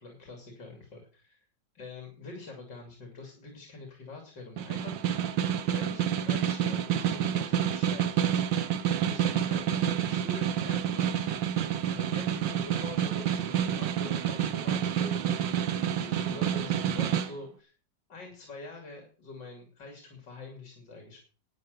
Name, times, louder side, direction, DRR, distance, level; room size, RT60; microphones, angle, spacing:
voice 1, 0.0-1.4 1.7-5.4 5.7-8.2 9.0-11.3 11.9-15.6 16.0-17.7 18.1-21.2, left 3 dB, 75° left, 2 dB, 3.6 m, -45 dB
Snare drum, 4.6-17.3, right 9 dB, 90° right, 1.7 m, -28 dB
12.0 x 9.2 x 6.7 m, 0.40 s
omnidirectional pair, 1.9 m